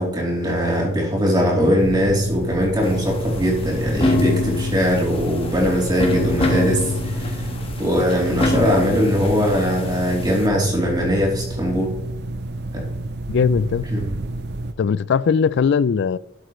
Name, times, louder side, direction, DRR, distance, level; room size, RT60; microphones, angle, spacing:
voice 1, 0.0-7.3 7.8-11.9 12.7-12.8 13.9-14.1, equal, 20° right, 3.2 m, -20 dB
sound 1, 1.8-14.7, right 2 dB, 55° right, 0.6 m, -30 dB
sound 2, 2.8-10.5, left 2 dB, 30° left, 1.5 m, -26 dB
voice 2, 13.3-13.9 14.8-16.2, left 6 dB, 60° left, 0.4 m, -19 dB
12.5 x 7.9 x 3.2 m
head